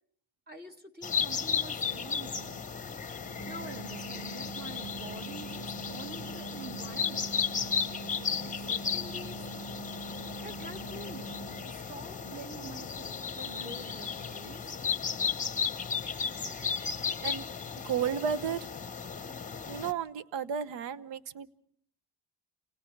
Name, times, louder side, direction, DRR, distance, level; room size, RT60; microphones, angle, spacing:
voice 1, 0.5-2.7 3.5-7.4 8.2-8.3 8.7-9.5 10.4-11.3 11.6-14.7, right 2 dB, 20° right, 6 dB, 1.8 m, -46 dB
sound 1, 1.0-19.9, left 6 dB, 20° left, 0.9 m, -35 dB
sound 2, 3.2-11.5, right 4 dB, 55° right, 7.7 m, -44 dB
voice 2, 17.8-18.7 19.7-21.5, right 7 dB, 80° right, 17 dB, 0.9 m, -33 dB
29.5 x 28.5 x 3.3 m, 0.62 s
cardioid pair, 110°, 43 cm